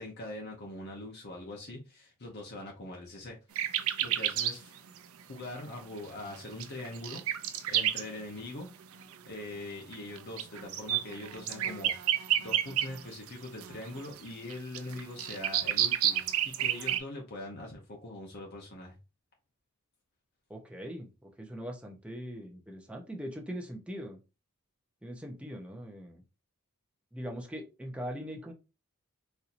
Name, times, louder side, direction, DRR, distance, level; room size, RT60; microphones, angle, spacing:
voice 1, 0.0-3.4 4.0-4.8 5.3-8.7 9.3-19.0, left 1 dB, 50° left, 0.8 m, -42 dB
sound 1, 3.6-4.5 5.0-5.1 6.3-8.1 9.0-9.1 9.9-13.3 13.6-17.0, right 11 dB, 70° right, 0.5 m, -30 dB
voice 2, 20.5-24.2 25.0-26.2 27.1-28.5, equal, 5° right, 0.6 m, -41 dB
4.3 x 2.7 x 2.5 m
head